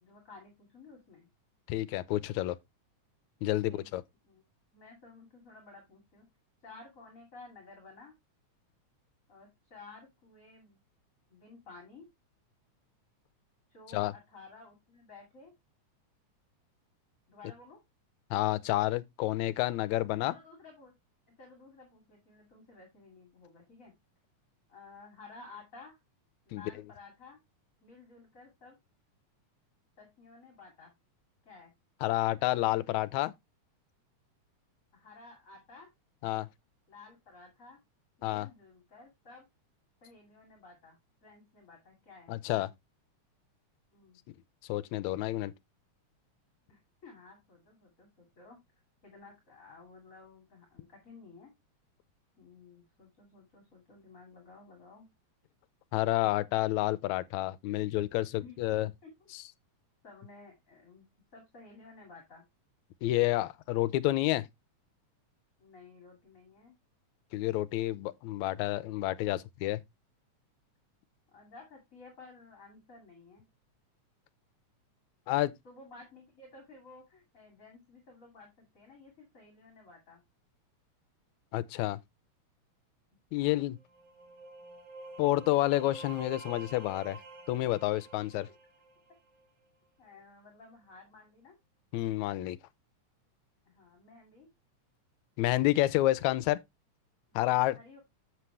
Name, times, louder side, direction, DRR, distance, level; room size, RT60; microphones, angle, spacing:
voice 1, 0.0-1.3 3.5-3.9 4.2-4.4 4.7-6.3 6.6-8.1 9.3-10.8 11.3-12.0 13.7-15.5 17.3-17.8 20.2-20.9 21.4-23.9 24.7-26.0 26.5-27.4 27.8-28.8 30.0-30.9 31.4-31.7 34.9-35.9 36.9-37.8 38.2-39.5 40.0-42.3 43.9-44.2 46.7-48.6 49.0-51.5 52.4-55.1 58.4-58.6 59.0-59.3 60.0-61.1 61.3-62.4 65.6-66.8 71.3-73.4 75.6-80.2 83.3-83.7 90.0-91.5 93.6-94.5 97.3-98.0, left 3 dB, 30° left, 2.4 m, -54 dB
voice 2, 1.7-2.6 3.4-4.0 13.9-14.1 18.3-20.4 26.5-26.6 32.0-33.3 36.2-36.5 38.2-38.5 42.3-42.7 44.7-45.5 55.9-58.9 63.0-64.5 67.3-69.8 75.3-75.5 81.5-82.0 83.3-83.8 85.2-87.2 87.5-88.5 91.9-92.6 95.4-96.6 97.4-97.8, left 16 dB, 80° left, 1.8 m, -29 dB
sound 1, 83.8-89.5, right 2 dB, 60° right, 3.2 m, -49 dB
7.7 x 7.2 x 3.2 m
omnidirectional pair, 3.5 m